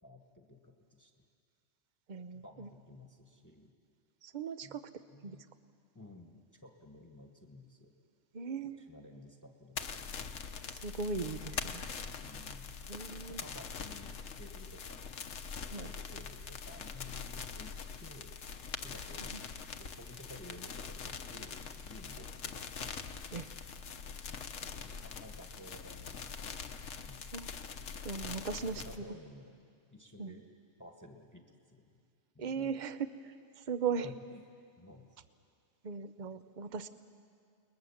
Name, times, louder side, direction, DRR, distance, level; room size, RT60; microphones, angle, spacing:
voice 1, 0.0-1.2 2.4-3.7 4.6-4.8 5.1-5.4 5.9-7.9 8.8-10.3 12.2-15.1 15.7-17.7 18.0-18.3 18.8-19.3 19.8-22.9 24.3-26.8 27.0-27.3 28.2-29.5 29.9-30.4 30.8-31.9 32.3-32.7 34.0-34.4 34.8-35.1, left 1 dB, 15° left, 3 dB, 1.4 m, -54 dB
voice 2, 2.1-2.7 4.2-4.9 5.2-5.4 8.3-8.8 10.8-11.8 12.9-13.4 15.7-15.9 19.3-19.4 23.3-23.5 27.3-27.5 28.0-28.8 30.2-30.3 32.4-33.1 33.6-34.1 35.8-36.9, right 5 dB, 40° right, 12 dB, 0.8 m, -38 dB
sound 1, 9.8-29.0, left 6 dB, 75° left, 1.3 m, -43 dB
30.0 x 21.0 x 7.2 m, 2.3 s
omnidirectional pair, 1.3 m